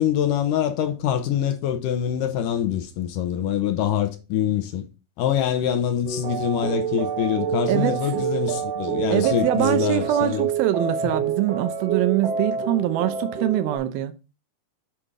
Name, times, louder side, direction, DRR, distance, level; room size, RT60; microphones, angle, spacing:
voice 1, 0.0-4.9 5.2-10.5 11.0-11.1, left 10 dB, 75° left, 2.1 m, -24 dB
sound 1, 6.0-13.8, right 7 dB, 65° right, 1.6 m, -27 dB
voice 2, 7.7-8.3 9.1-14.1, right 13 dB, 85° right, 2.6 m, -23 dB
9.1 x 4.8 x 3.7 m
omnidirectional pair, 4.2 m